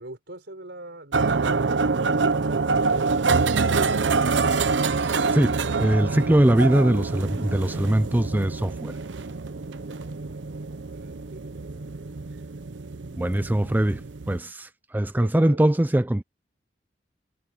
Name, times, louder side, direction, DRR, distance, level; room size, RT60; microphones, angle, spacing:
voice 1, 0.0-1.7 9.8-12.2 14.9-15.6, right 1 dB, 70° right, 5.5 m, -43 dB
sound 1, 1.1-14.4, right 4 dB, 85° right, 0.7 m, -26 dB
voice 2, 5.3-8.9 13.2-16.2, right 1 dB, 10° right, 0.4 m, -22 dB
head